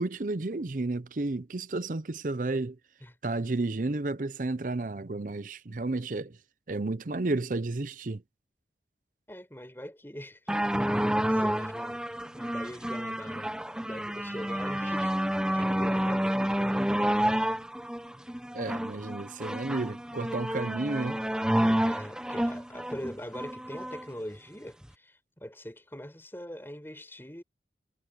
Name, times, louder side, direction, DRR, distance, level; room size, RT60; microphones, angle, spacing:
voice 1, 0.0-2.8 3.2-6.4 6.7-8.2 18.5-21.2, right 2 dB, 45° right, 0.6 m, -32 dB
voice 2, 9.3-10.6 10.9-12.0 12.3-15.1 15.5-16.9 21.8-27.4, equal, 10° left, 5.8 m, -42 dB
sound 1, 10.5-24.0 24.8-24.9, equal, 5° right, 1.0 m, -29 dB
head